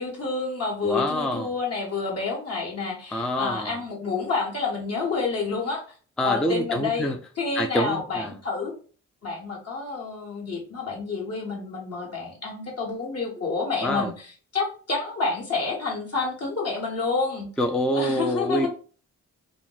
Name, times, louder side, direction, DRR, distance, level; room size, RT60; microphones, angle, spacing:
voice 1, 0.0-5.8 6.2-7.1 7.4-8.7 9.2-17.5 17.9-18.7, left 4 dB, 55° left, -1 dB, 1.3 m, -29 dB
voice 2, 0.8-1.5 3.1-3.8 6.2-7.2 7.5-8.4 13.8-14.1 17.6-18.7, equal, ahead, 5 dB, 0.3 m, -26 dB
2.5 x 2.0 x 3.8 m, 0.40 s
cardioid pair, 80°, 30 cm